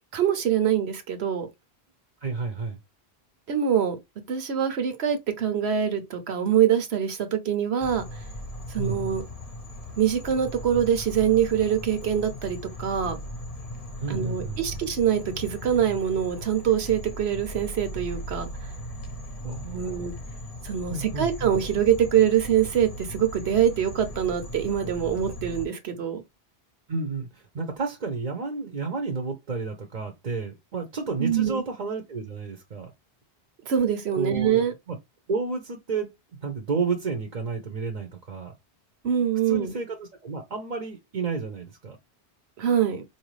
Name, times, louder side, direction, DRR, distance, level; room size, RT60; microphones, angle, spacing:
voice 1, 0.1-1.5 3.5-4.0 4.3-8.0 8.7-9.2 10.0-13.2 14.1-18.5 19.7-20.1 20.6-26.2 31.2-31.6 33.7-34.7 39.0-39.7 42.6-43.0, right 9 dB, 75° right, 1.1 m, -24 dB
voice 2, 2.2-2.8 8.8-9.0 14.0-14.6 19.4-20.1 20.9-21.5 26.9-32.9 34.1-35.0 35.3-36.1 36.4-38.5 39.4-42.0, right 4 dB, 45° right, 0.8 m, -31 dB
sound 1, 7.8-25.7, equal, 40° left, 0.7 m, -38 dB
4.4 x 2.7 x 3.0 m
omnidirectional pair, 1.1 m